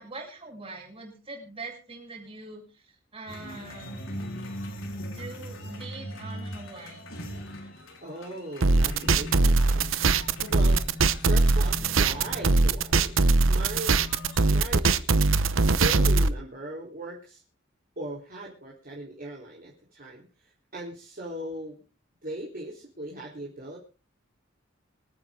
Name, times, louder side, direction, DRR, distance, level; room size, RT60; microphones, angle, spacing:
voice 1, 0.0-4.0 5.0-7.1, right 3 dB, 30° right, 0 dB, 7.8 m, -43 dB
sound 1, 3.3-14.6, left 1 dB, 80° left, 4.8 m, -40 dB
voice 2, 8.0-9.9 10.5-10.8 11.2-14.2 14.5-15.1 15.8-17.4 18.0-21.8 22.2-23.8, right 1 dB, 45° right, -4 dB, 4.0 m, -38 dB
sound 2, 8.6-16.3, right 3 dB, 80° right, 0.9 m, -21 dB
26.5 x 9.4 x 3.8 m, 0.34 s
head